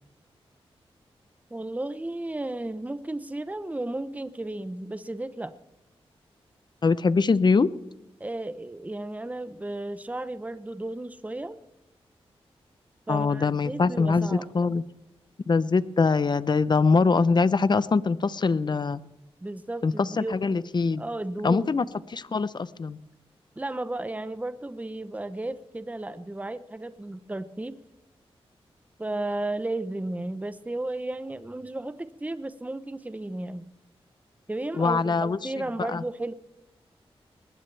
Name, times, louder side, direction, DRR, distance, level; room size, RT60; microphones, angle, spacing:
voice 1, 1.5-5.5 8.2-11.6 13.1-14.5 19.4-20.4 21.0-21.8 23.6-27.7 29.0-33.7 34.5-36.3, right 2 dB, 15° right, 12 dB, 0.9 m, -34 dB
voice 2, 6.8-7.7 13.1-14.8 15.5-19.0 19.8-21.0 21.4-21.8 22.1-23.0 34.8-35.4 35.9-36.0, left 4 dB, 45° left, 16 dB, 0.7 m, -23 dB
21.0 x 19.0 x 3.4 m, 0.93 s
cardioid pair, 65°, 10 cm